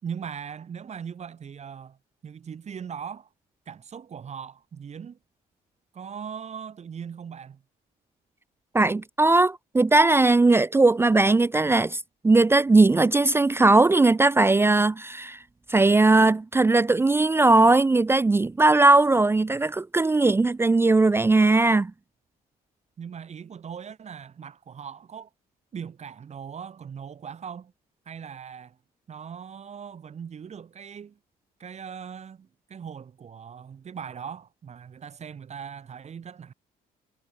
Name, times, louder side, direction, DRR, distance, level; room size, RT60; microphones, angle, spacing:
voice 1, 0.0-2.0 2.2-3.3 3.7-5.2 5.9-7.6 23.0-25.3 25.7-27.7 28.1-28.8 29.1-31.2 31.6-36.5, right 7 dB, 40° right, 7.6 m, -39 dB
voice 2, 8.7-15.4 15.7-21.9, right 2 dB, 15° right, 0.5 m, -19 dB
cardioid pair, 110°, 17 cm